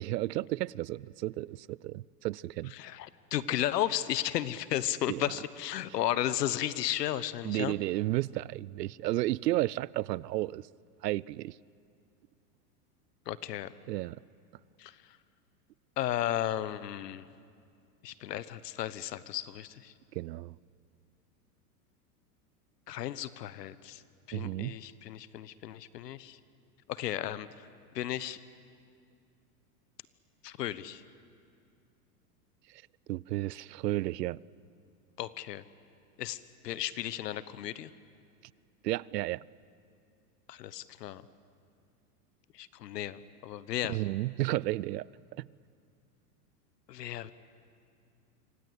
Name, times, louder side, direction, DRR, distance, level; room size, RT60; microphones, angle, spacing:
voice 1, 0.0-2.7 5.1-5.2 7.4-10.7 11.0-11.6 13.9-14.2 20.1-20.5 24.3-24.8 32.7-32.8 33.1-34.4 38.8-39.4 43.8-45.5, right 16 dB, 85° right, 0.6 m, -32 dB
voice 2, 2.7-7.7 13.3-13.7 14.8-15.0 16.0-17.3 18.0-19.9 22.9-24.0 24.3-26.4 26.9-27.7 27.9-28.4 30.4-31.0 35.2-35.6 36.2-37.9 40.5-41.2 42.5-44.0 46.9-47.3, left 12 dB, 85° left, 1.2 m, -34 dB
27.5 x 25.5 x 8.2 m
hypercardioid pair, 120°, 47 cm